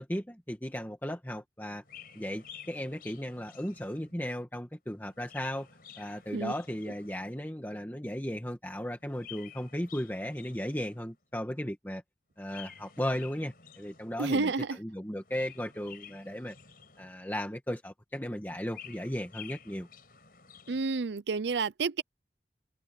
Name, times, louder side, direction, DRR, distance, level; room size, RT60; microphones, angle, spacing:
voice 1, 0.0-1.8 2.1-5.7 6.0-12.0 12.4-14.5 14.8-16.5 17.0-19.9, equal, 10° left, 1.9 m, -36 dB
Chirp tweet, 1.8-4.3 5.0-7.4 9.0-11.2 12.4-14.3 15.1-17.4 18.4-21.0, left 8 dB, 50° left, 5.3 m, -52 dB
voice 2, 14.2-14.8 20.7-22.0, right 4 dB, 75° right, 0.6 m, -30 dB
head